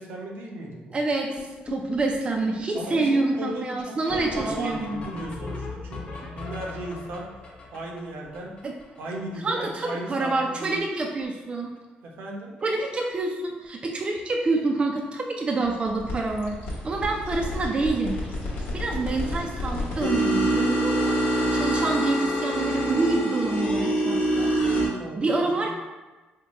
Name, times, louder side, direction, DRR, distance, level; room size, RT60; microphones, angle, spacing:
voice 1, 0.0-1.0 2.7-7.3 7.7-8.6 9.0-10.8 12.0-12.5 24.7-25.7, right 1 dB, 75° right, -1 dB, 0.7 m, -36 dB
voice 2, 0.9-4.8 8.6-8.7 9.4-11.7 12.6-16.6 16.8-18.2 18.7-24.5 25.2-25.7, right 3 dB, 30° right, 1 dB, 0.4 m, -27 dB
sound 1, 1.4-9.6 9.9-10.0 10.2-10.4 10.7-11.2 11.5-11.8 12.6-12.7 13.1-13.2 13.5-13.7 15.9-16.0 18.3-18.4, left 3 dB, 35° left, 0.7 m, -39 dB
sound 2, 15.9-24.9, right 1 dB, 80° left, 1.0 m, -26 dB
3.6 x 2.2 x 3.9 m, 1.2 s
cardioid pair, 90°, 3 cm